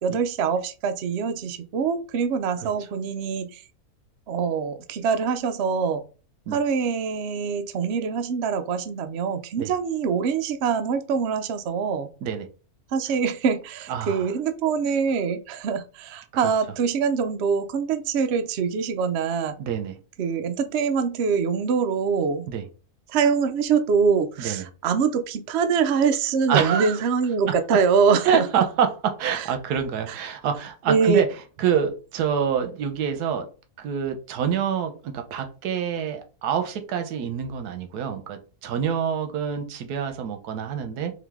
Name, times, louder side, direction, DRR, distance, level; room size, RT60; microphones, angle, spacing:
voice 1, 0.0-3.6 4.3-6.0 6.5-12.1 12.9-19.5 20.2-22.5 23.1-28.5 29.3-29.5 30.1-30.2 30.9-31.2, right 6 dB, 70° right, 8 dB, 0.6 m, -24 dB
voice 2, 13.9-14.3 16.3-16.4 19.6-20.0 22.5-22.6 24.4-24.6 26.5-27.0 27.5-27.8 28.2-31.3 31.6-33.5 33.8-41.1, right 8 dB, 85° right, 7 dB, 1.2 m, -26 dB
3.8 x 2.7 x 3.5 m, 0.35 s
omnidirectional pair, 1.6 m